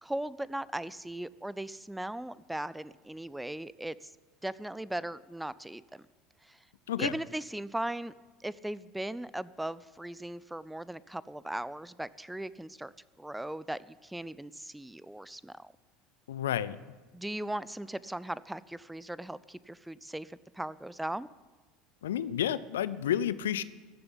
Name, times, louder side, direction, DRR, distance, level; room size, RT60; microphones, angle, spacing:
voice 1, 0.0-3.9 4.4-6.0 6.5-6.6 7.0-8.1 8.4-12.9 13.2-15.7 17.1-21.3, right 1 dB, 5° right, 19 dB, 0.5 m, -38 dB
voice 2, 16.3-16.8 22.0-23.6, left 10 dB, 80° left, 16 dB, 0.5 m, -30 dB
14.0 x 7.0 x 9.9 m, 1.3 s
hypercardioid pair, 75°, 0 cm